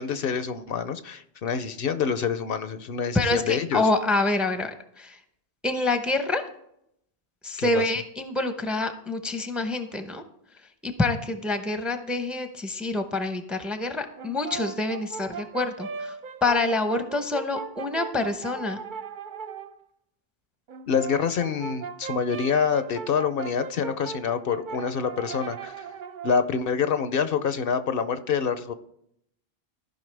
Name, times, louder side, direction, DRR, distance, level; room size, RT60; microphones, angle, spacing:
voice 1, 0.0-3.9 7.6-7.8 20.9-25.9 26.2-28.7, left 6 dB, 65° left, 11 dB, 0.8 m, -26 dB
voice 2, 3.1-5.2 5.6-6.4 7.4-10.2 10.8-18.8, left 2 dB, ahead, 7 dB, 0.7 m, -27 dB
Brass instrument, 14.2-19.7 20.7-26.5, right 6 dB, 55° right, 0.7 m, -38 dB
14.5 x 5.6 x 3.3 m, 0.75 s
omnidirectional pair, 1.1 m